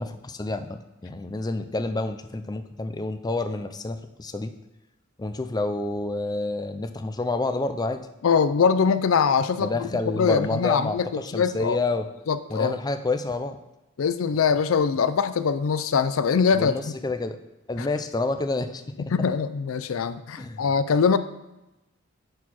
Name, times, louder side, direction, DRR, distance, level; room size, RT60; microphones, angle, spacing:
voice 1, 0.0-4.5 5.2-8.0 9.6-12.1 12.5-13.6 16.5-17.4 17.7-19.1 20.4-20.7, left 2 dB, 20° left, 8 dB, 0.5 m, -29 dB
voice 2, 8.2-9.9 10.1-11.1 11.3-11.8 12.3-12.8 14.0-16.9 17.8-17.9 19.0-21.2, left 6 dB, 75° left, 12 dB, 0.4 m, -23 dB
10.5 x 4.5 x 4.2 m, 0.98 s
head